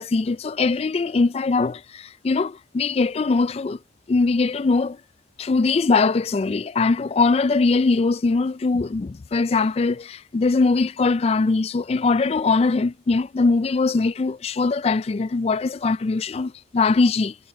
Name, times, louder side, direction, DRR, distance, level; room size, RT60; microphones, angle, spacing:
voice 1, 0.0-3.8 4.1-5.0 5.4-17.3, left 3 dB, 30° left, 0.3 m, -21 dB
head